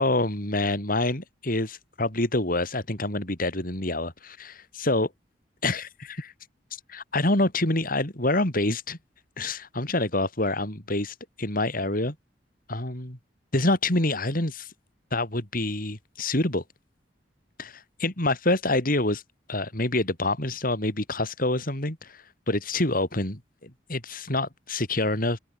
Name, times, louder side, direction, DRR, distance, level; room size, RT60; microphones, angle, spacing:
voice 1, 0.0-5.1 5.6-6.3 6.9-9.0 9.4-12.2 12.7-13.2 13.5-14.7 15.1-16.6 17.6-19.2 19.5-25.4, left 2 dB, 50° left, 4.4 m, -27 dB
head